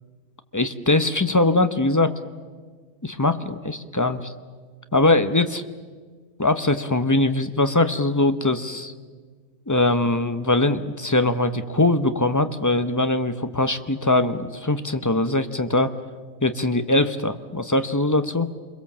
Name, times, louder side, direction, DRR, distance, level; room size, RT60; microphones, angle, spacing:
voice 1, 0.5-2.1 3.0-4.3 4.9-5.6 6.4-8.9 9.7-15.9 16.4-18.5, left 2 dB, 20° left, 10 dB, 0.5 m, -21 dB
27.5 x 22.0 x 7.4 m, 1.5 s
omnidirectional pair, 1.7 m